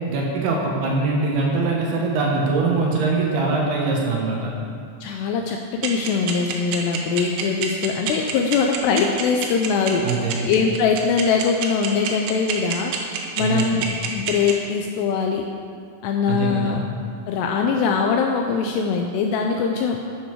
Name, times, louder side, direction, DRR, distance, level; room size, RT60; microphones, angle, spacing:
voice 1, 0.1-4.5 10.0-10.4 13.4-13.8 16.3-16.8, right 3 dB, 70° right, -2 dB, 2.8 m, -22 dB
voice 2, 5.0-10.1 10.4-12.9 13.4-13.9 14.1-15.5 16.0-16.8 17.3-20.0, left 5 dB, 80° left, 3 dB, 2.5 m, -22 dB
sound 1, 5.8-14.5, right 9 dB, 85° right, 3.6 m, -26 dB
11.5 x 9.3 x 4.6 m, 2.3 s
omnidirectional pair, 5.4 m